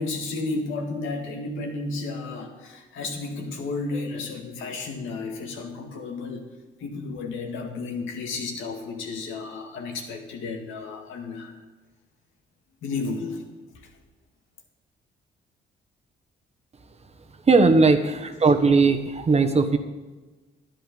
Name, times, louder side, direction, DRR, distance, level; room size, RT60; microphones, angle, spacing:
voice 1, 0.0-6.5 6.8-11.6 12.8-13.5 18.2-18.4, left 3 dB, 80° left, 2 dB, 2.1 m, -32 dB
voice 2, 17.5-19.8, right 4 dB, 30° right, 6 dB, 1.2 m, -18 dB
11.0 x 10.0 x 5.3 m, 1.2 s
cardioid pair, 90°, 20 cm